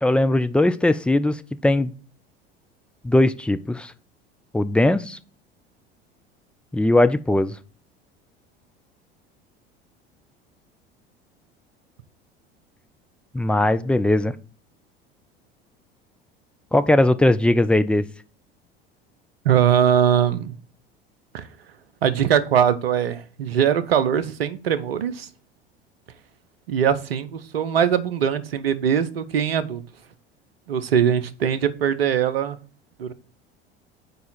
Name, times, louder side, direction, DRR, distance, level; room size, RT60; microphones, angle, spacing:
voice 1, 0.0-1.9 3.0-3.9 4.5-5.2 6.7-7.5 13.3-14.3 16.7-18.0, left 1 dB, 5° left, 0.3 m, -19 dB
voice 2, 19.4-20.5 21.3-21.5 22.0-25.3 26.7-29.8 30.7-32.6 33.0-33.1, right 8 dB, 75° right, 0.8 m, -21 dB
6.8 x 4.7 x 4.1 m
figure-of-eight pair, 70°, 30 cm